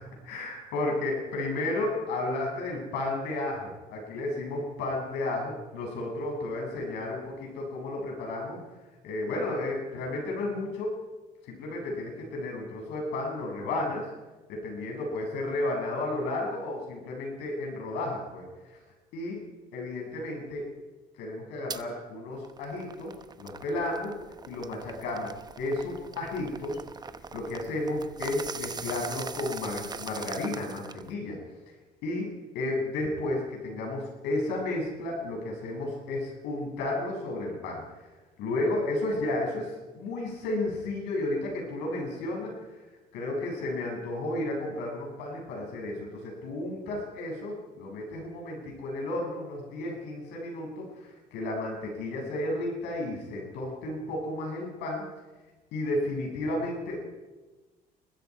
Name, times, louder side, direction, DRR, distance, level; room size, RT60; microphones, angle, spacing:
voice 1, 0.3-8.6 9.0-11.0 11.4-14.1 14.5-18.8 19.1-19.4 19.7-20.7 21.2-23.1 23.4-24.1 24.5-25.3 25.6-26.8 27.3-31.4 32.0-32.3 32.5-38.1 38.4-42.8 43.1-55.1 55.7-57.1, left 2 dB, 90° left, 0 dB, 7.5 m, -32 dB
sound 1, 21.7-21.8 22.3-31.1, right 5 dB, 25° right, 0.9 m, -41 dB
29.0 x 20.5 x 4.9 m, 1.2 s
cardioid pair, 110°, 17 cm